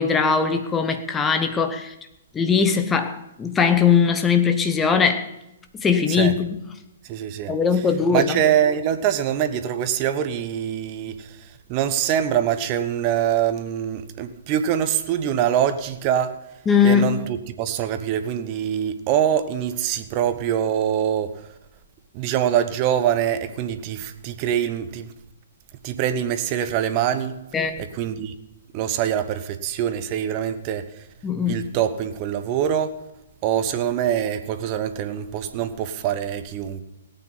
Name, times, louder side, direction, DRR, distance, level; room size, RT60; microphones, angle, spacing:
voice 1, 0.0-1.9 2.3-5.3 5.7-6.5 7.5-8.4 16.7-17.2 27.5-27.8 31.2-31.6, left 6 dB, 15° left, 1.0 m, -20 dB
voice 2, 7.0-7.6 8.1-16.4 16.8-21.5 22.1-25.1 25.8-27.4 27.9-28.3 28.7-31.1 31.5-33.1 33.4-36.8, right 10 dB, 30° right, 1.2 m, -24 dB
18.0 x 9.1 x 5.7 m
figure-of-eight pair, 120°, 0 cm